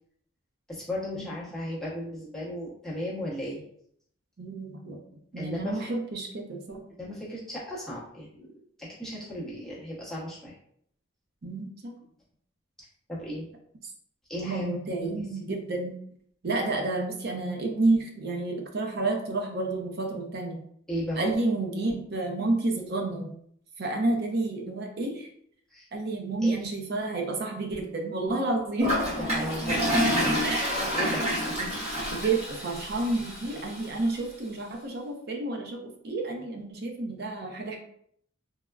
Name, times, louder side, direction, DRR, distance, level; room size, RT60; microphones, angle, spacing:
voice 1, 0.7-3.7 5.4-5.8 7.0-8.5 8.8-10.5 13.1-13.5 14.3-15.2 20.9-21.2 25.7-25.9 26.4-26.6 29.3-29.7 30.0-31.8, left 1 dB, ahead, -7 dB, 0.7 m, -36 dB
voice 2, 4.4-5.0 5.3-6.8 11.4-11.9 14.3-16.0 16.4-20.6 21.2-23.3 23.8-25.3 25.9-28.9 30.4-30.8 32.1-37.8, right 2 dB, 50° right, 2 dB, 0.5 m, -30 dB
Toilet flush, 28.8-33.9, equal, 30° right, 0.9 m, -28 dB
3.4 x 2.0 x 2.2 m, 0.66 s
head